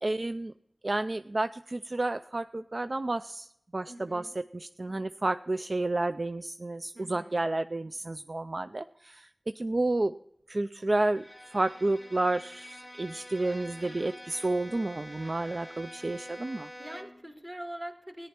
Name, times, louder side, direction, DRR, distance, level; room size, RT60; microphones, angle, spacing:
voice 1, 0.0-0.5 0.8-3.5 3.7-9.3 9.6-10.1 10.5-11.2 11.5-16.7, right 2 dB, 55° right, 11 dB, 0.3 m, -31 dB
voice 2, 3.9-4.3 6.9-7.4 16.8-18.3, right 1 dB, 30° right, 4 dB, 2.1 m, -43 dB
Bowed string instrument, 10.9-17.3, equal, 10° left, 1.1 m, -47 dB
15.0 x 10.0 x 4.3 m, 0.76 s
wide cardioid pair, 45°, 0 cm